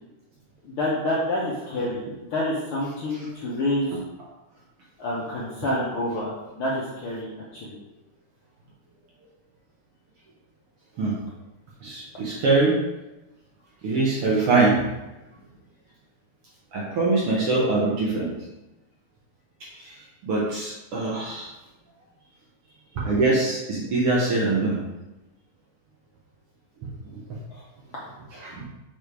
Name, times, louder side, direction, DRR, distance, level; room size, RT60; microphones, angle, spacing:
voice 1, 0.6-2.0 2.3-4.0 5.0-7.8 27.5-27.6, left 1 dB, 65° left, -6 dB, 1.4 m, -28 dB
voice 2, 11.8-12.8 13.8-14.8 16.7-18.3 19.6-20.0 20.2-21.5 22.9-24.8 26.8-27.4 28.3-28.7, right 3 dB, 60° right, -5 dB, 1.6 m, -23 dB
6.8 x 3.2 x 4.6 m, 1.0 s
omnidirectional pair, 3.5 m